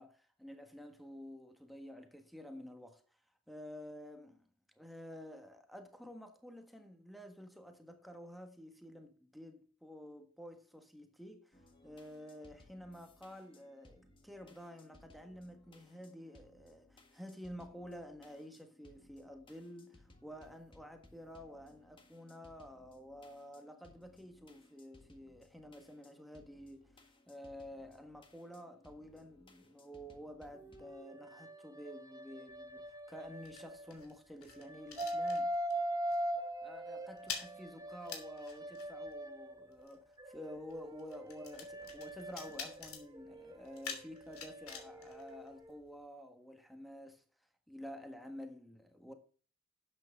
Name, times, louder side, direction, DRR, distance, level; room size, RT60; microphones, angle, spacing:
voice 1, 0.0-3.0 3.5-4.5 4.7-11.6 11.8-35.5 36.6-47.2 47.7-49.1, equal, ahead, 1.5 m, -50 dB
sound 1, 11.5-30.9, left 2 dB, 25° left, 1.7 m, -64 dB
sound 2, 30.5-34.1 34.5-39.8 40.2-45.8, right 1 dB, 15° right, 1.1 m, -42 dB
sound 3, 32.5-35.8 36.1-36.4 36.6-46.0, left 6 dB, 75° left, 3.0 m, -49 dB
12.0 x 8.5 x 3.7 m
head